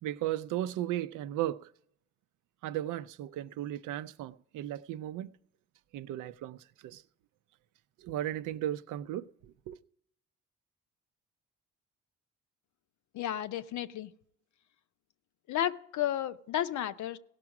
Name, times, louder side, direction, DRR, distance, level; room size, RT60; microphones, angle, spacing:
voice 1, 0.0-1.7 2.6-5.3 5.9-7.0 8.0-9.8, right 13 dB, 85° right, 0.5 m, -36 dB
voice 2, 13.1-14.1 15.5-17.2, left 11 dB, 75° left, 0.6 m, -32 dB
16.5 x 6.1 x 4.8 m
cardioid pair, 90°, 30 cm